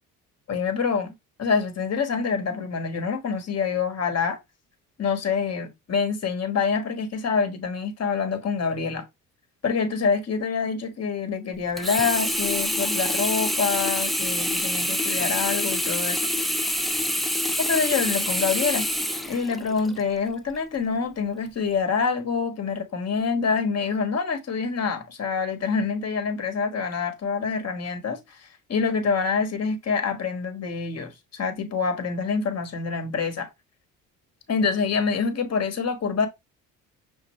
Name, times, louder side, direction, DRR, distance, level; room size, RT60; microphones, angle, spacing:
voice 1, 0.5-1.1 1.4-4.4 5.0-9.0 9.6-16.2 17.6-18.9 19.3-33.5 34.5-36.3, left 5 dB, 40° left, 1.3 m, -26 dB
Sink (filling or washing), 11.8-20.0 20.5-20.6, equal, ahead, 0.4 m, -26 dB
6.0 x 2.5 x 3.0 m
hypercardioid pair, 60°, 39 cm